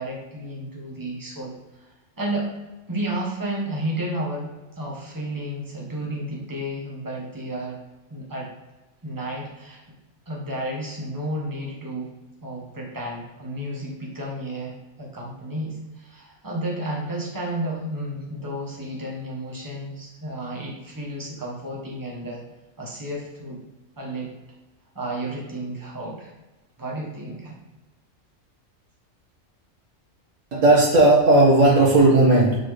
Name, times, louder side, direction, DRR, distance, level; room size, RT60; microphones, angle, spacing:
voice 1, 0.0-2.5 2.9-4.5 4.8-7.8 8.1-8.5 9.0-9.8 10.3-12.1 12.4-22.4 22.8-23.6 24.0-24.3 24.9-26.3 26.8-27.5, right 1 dB, 15° right, -3 dB, 1.3 m, -32 dB
voice 2, 30.5-32.6, right 2 dB, 70° right, -4 dB, 2.0 m, -15 dB
7.1 x 4.3 x 3.3 m, 1.1 s
omnidirectional pair, 1.4 m